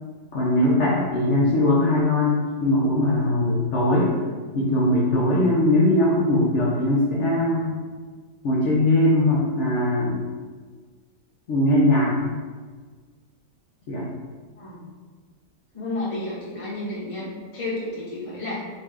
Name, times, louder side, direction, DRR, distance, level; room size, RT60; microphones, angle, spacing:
voice 1, 0.3-4.1 4.5-7.7 8.4-10.2 11.5-12.1 13.9-14.1, left 1 dB, 70° left, -7 dB, 0.6 m, -20 dB
voice 2, 14.6-14.9 15.7-18.6, left 2 dB, 25° left, -7 dB, 0.7 m, -31 dB
4.0 x 2.4 x 3.3 m, 1.5 s
omnidirectional pair, 1.9 m